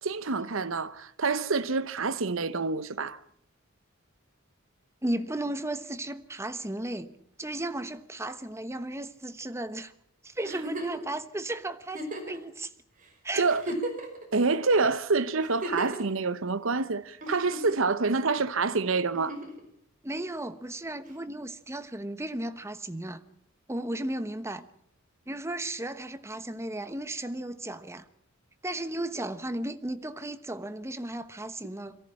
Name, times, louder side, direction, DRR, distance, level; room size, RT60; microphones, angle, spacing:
voice 1, 0.0-3.2 13.4-13.6 14.3-19.4, right 4 dB, 70° right, 0.9 m, -27 dB
voice 2, 5.0-7.1 7.4-9.9 10.2-12.0 12.3-12.7 13.2-13.4 20.0-23.2 23.7-24.6 25.3-28.0 28.6-32.0, right 1 dB, 15° right, 1.1 m, -35 dB
Giggle, 10.4-11.0 11.9-12.4 13.0-13.1 13.5-14.2 15.4-16.0 17.2-17.9 19.1-19.6 21.1-21.2, right 1 dB, 40° right, 5.1 m, -36 dB
23.0 x 14.5 x 8.6 m
head